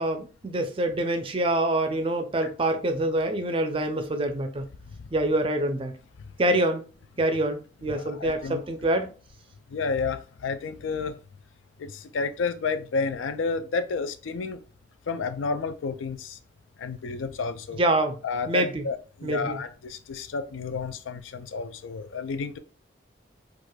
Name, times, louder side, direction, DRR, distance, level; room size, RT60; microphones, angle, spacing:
voice 1, 0.0-4.7 5.1-5.9 6.4-6.8 7.2-9.1 17.7-18.2 18.5-18.8 19.2-19.6, right 1 dB, 30° right, 0.4 m, -26 dB
voice 2, 7.9-8.6 9.7-11.2 11.8-14.6 15.1-16.4 16.8-17.8 18.2-22.6, left 4 dB, 90° left, 0.4 m, -31 dB
4.7 x 2.4 x 2.2 m
head